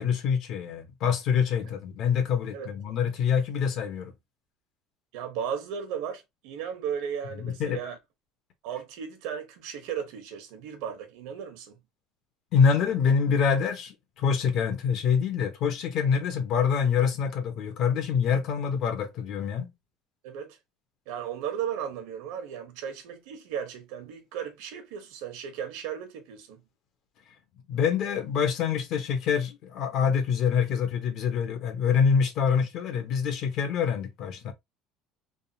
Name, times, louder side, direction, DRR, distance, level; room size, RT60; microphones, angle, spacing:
voice 1, 0.0-4.1 7.4-7.8 12.5-19.7 27.7-34.5, left 6 dB, 50° left, 0.9 m, -25 dB
voice 2, 5.1-8.0 8.6-11.8 20.2-20.6 21.1-26.6, right 8 dB, 80° right, 1.1 m, -35 dB
3.5 x 2.5 x 2.7 m
cardioid pair, 155°, 0 cm